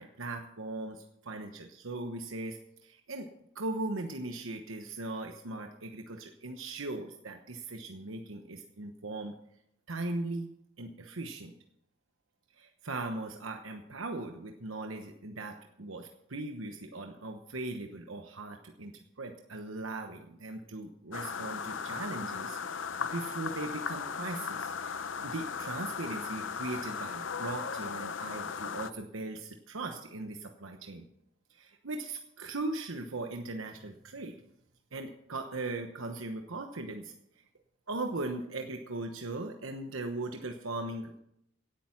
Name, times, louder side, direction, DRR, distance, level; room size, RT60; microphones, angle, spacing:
voice 1, 0.0-3.3 3.5-9.3 9.9-11.5 12.6-18.9 19.2-31.1 31.5-34.4 34.9-37.1 37.9-41.2, right 2 dB, 85° right, 4 dB, 1.1 m, -39 dB
sound 1, 21.1-28.9, left 6 dB, 70° left, 0.7 m, -37 dB
17.5 x 8.9 x 5.9 m, 0.76 s
head